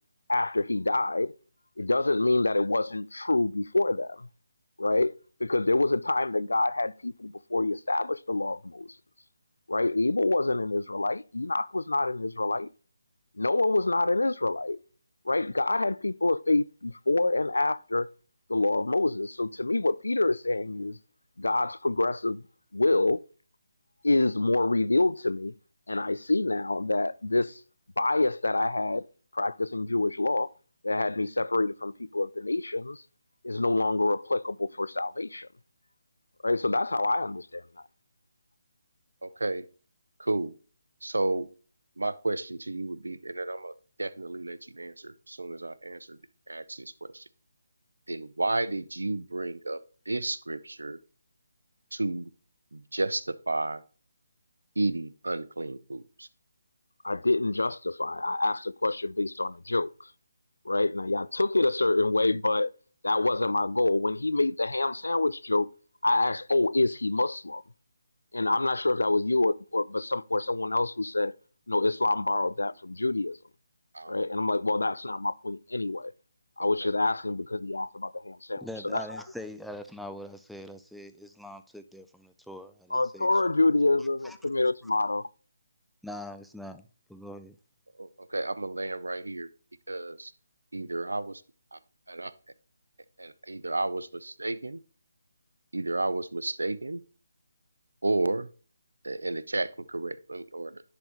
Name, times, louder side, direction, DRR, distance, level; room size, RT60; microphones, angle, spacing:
voice 1, 0.3-1.3 1.8-4.3 4.8-5.1 5.4-8.9 9.7-12.7 13.4-14.8 15.3-18.1 18.5-21.0 21.4-22.4 22.7-23.2 24.0-25.5 25.9-27.6 28.0-29.0 29.3-30.5 30.8-33.0 33.4-35.5 36.4-37.6 57.0-60.1 60.7-62.7 63.0-65.7 66.0-67.6 68.3-71.3 71.7-73.4 74.1-76.1 76.6-79.0 82.9-85.3, left 2 dB, 90° left, 0.3 m, -27 dB
voice 2, 39.2-39.7 40.2-40.5 41.0-41.5 42.0-46.2 46.5-47.2 48.1-51.0 51.9-52.3 52.7-53.8 54.8-56.3 73.9-74.2 76.6-76.9 88.0-89.5 89.9-90.3 90.7-91.3 92.1-92.3 93.2-94.8 95.7-97.0 98.0-98.5 99.0-100.8, right 2 dB, 90° right, 0.5 m, -32 dB
voice 3, 78.6-83.5 84.0-84.4 86.0-87.6, left 1 dB, ahead, 0.3 m, -43 dB
10.5 x 3.9 x 3.0 m
figure-of-eight pair, 155°, 0 cm